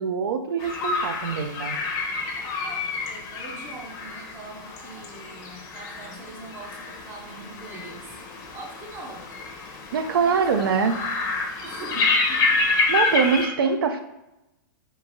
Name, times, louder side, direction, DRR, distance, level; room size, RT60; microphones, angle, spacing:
voice 1, 0.0-1.8 9.9-10.9 12.9-14.0, right 5 dB, 90° right, 8 dB, 0.4 m, -23 dB
sound 1, 0.6-13.5, left 3 dB, 30° left, 0.5 m, -28 dB
voice 2, 3.1-8.2 8.5-9.2 10.2-10.7 11.6-12.6, right 3 dB, 20° right, 2 dB, 0.5 m, -41 dB
3.0 x 2.3 x 2.6 m, 0.94 s
hypercardioid pair, 145°, 12 cm